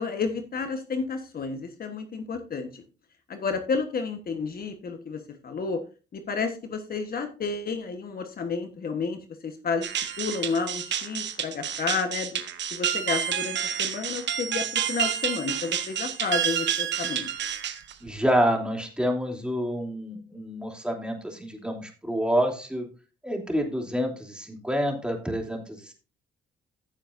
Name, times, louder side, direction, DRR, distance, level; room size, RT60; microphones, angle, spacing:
voice 1, 0.0-2.8 3.3-5.8 6.1-12.4 12.7-17.3, left 4 dB, 50° left, 6 dB, 1.4 m, -31 dB
sound 1, 9.8-18.1, right 9 dB, 65° right, 1.3 m, -29 dB
voice 2, 18.0-22.9 23.2-25.9, equal, 5° right, 1 dB, 3.1 m, -28 dB
15.5 x 7.2 x 2.6 m, 0.35 s
cardioid pair, 90°, 20 cm